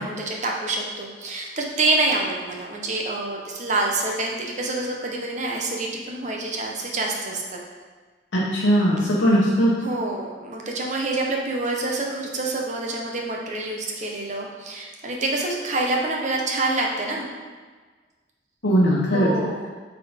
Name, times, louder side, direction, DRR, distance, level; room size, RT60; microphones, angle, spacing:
voice 1, 0.0-7.6 9.8-17.3 19.1-19.7, right 2 dB, 40° right, -1 dB, 0.9 m, -27 dB
voice 2, 8.3-9.7 18.6-19.3, equal, 75° left, -6 dB, 1.0 m, -19 dB
8.4 x 3.8 x 3.5 m, 1.5 s
head